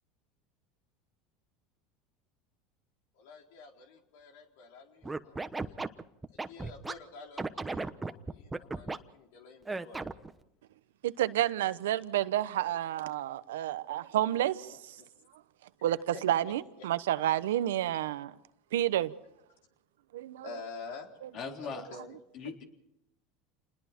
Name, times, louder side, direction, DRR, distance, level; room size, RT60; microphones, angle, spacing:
voice 1, 3.1-5.8 6.3-10.4 15.0-15.1 16.1-16.2 16.8-16.9 20.4-21.3 21.6-22.2, left 4 dB, 75° left, 4.0 m, -48 dB
Scratching (performance technique), 5.0-6.9 7.4-9.0 9.7-10.3, right 3 dB, 15° right, 1.1 m, -35 dB
voice 2, 11.0-14.8 15.8-18.4 18.7-19.1 20.1-20.5, right 12 dB, 90° right, 0.9 m, -30 dB
voice 3, 21.3-21.8 22.3-22.6, left 6 dB, 50° left, 3.9 m, -39 dB
28.0 x 20.5 x 4.5 m
supercardioid pair, 100°, 0 cm